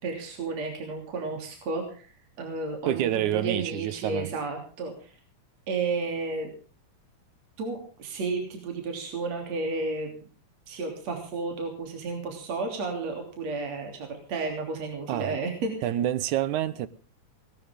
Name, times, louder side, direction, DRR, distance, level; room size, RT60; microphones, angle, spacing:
voice 1, 0.0-2.1 2.4-5.1 5.7-6.5 7.6-10.2 10.7-15.9, right 3 dB, 55° right, 4.3 m, -32 dB
voice 2, 2.9-4.3 15.1-15.4 15.8-16.9, right 12 dB, 75° right, 2.3 m, -28 dB
19.0 x 18.0 x 3.7 m
omnidirectional pair, 3.7 m